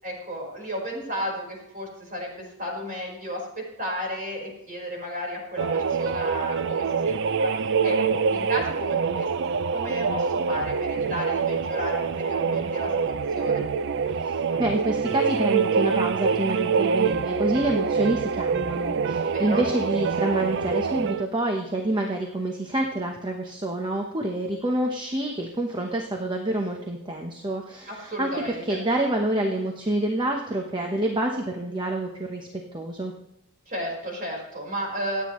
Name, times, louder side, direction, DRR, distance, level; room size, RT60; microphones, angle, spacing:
voice 1, 0.0-13.6 19.2-19.6 27.9-28.6 33.7-35.2, equal, 40° right, -1 dB, 4.8 m, -33 dB
sound 1, 5.6-21.3, right 5 dB, 55° right, 0.4 m, -25 dB
voice 2, 14.2-33.1, right 1 dB, 20° right, 2 dB, 1.0 m, -27 dB
26.0 x 9.2 x 3.2 m, 0.88 s
head